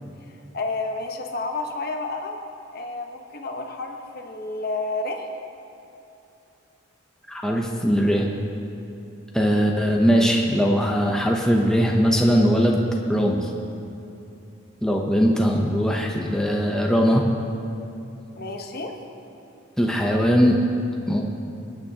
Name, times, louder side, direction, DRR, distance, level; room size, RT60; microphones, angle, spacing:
voice 1, 0.3-2.4 2.7-5.3 9.5-9.8 18.3-19.0, left 3 dB, 45° left, 3 dB, 1.0 m, -31 dB
voice 2, 7.3-8.3 9.3-12.8 13.1-13.5 14.8-17.3 19.8-20.6 21.1-21.2, equal, 5° left, -1 dB, 0.7 m, -20 dB
25.5 x 8.9 x 2.9 m, 2.7 s
head